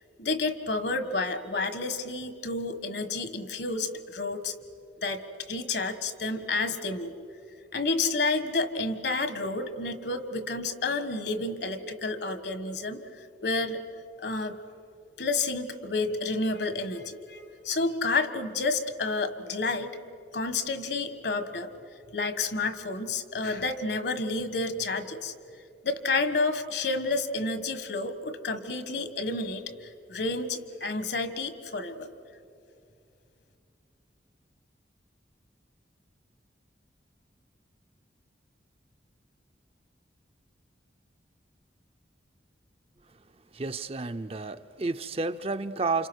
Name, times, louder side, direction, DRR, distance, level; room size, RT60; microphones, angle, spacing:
voice 1, 0.2-4.5 5.0-5.2 5.5-7.1 7.7-13.0 13.4-13.8 14.2-14.6 15.2-20.0 20.3-21.7 22.1-25.3 25.8-32.1, left 3 dB, 65° left, 11 dB, 1.4 m, -30 dB
voice 2, 43.5-46.1, right 3 dB, 30° right, 10 dB, 0.5 m, -31 dB
29.0 x 27.0 x 6.3 m, 2.5 s
head